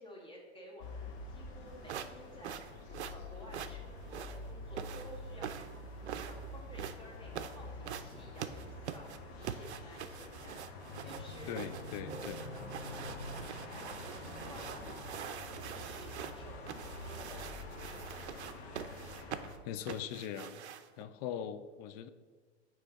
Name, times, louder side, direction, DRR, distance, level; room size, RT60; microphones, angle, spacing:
voice 1, 0.0-5.5 5.9-10.6 11.0-11.6 12.1-13.2 13.6-18.3, equal, 15° left, -3 dB, 1.7 m, -54 dB
sound 1, 0.8-19.6, left 2 dB, 65° left, 1.1 m, -46 dB
sound 2, 1.8-21.0, right 9 dB, 80° right, 0.5 m, -44 dB
voice 2, 11.5-12.4 19.6-20.7 21.0-22.1, left 9 dB, 40° left, 12 dB, 0.4 m, -41 dB
Keyboard (musical), 12.1-14.8, equal, 20° right, 1.0 m, -55 dB
8.2 x 3.2 x 4.0 m, 1.5 s
hypercardioid pair, 115°, 33 cm